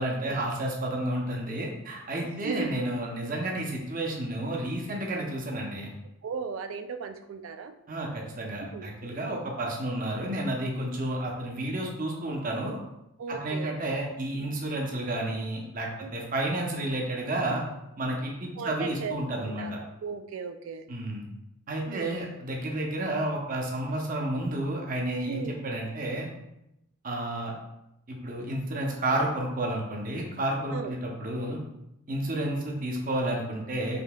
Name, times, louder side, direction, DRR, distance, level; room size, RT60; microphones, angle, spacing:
voice 1, 0.0-5.9 7.9-12.8 13.3-17.6 18.0-19.8 20.9-21.3 21.7-26.3 27.0-27.5 28.1-31.6 32.1-34.0, right 1 dB, 45° right, 0 dB, 0.7 m, -31 dB
voice 2, 2.4-2.8 6.2-7.7 8.7-8.9 13.2-13.8 16.0-16.1 18.6-19.2 19.6-19.7 20.0-20.8 21.9-22.2 25.3-25.5 30.7-30.9, right 5 dB, 75° right, 9 dB, 0.4 m, -36 dB
5.1 x 2.8 x 2.3 m, 0.85 s
head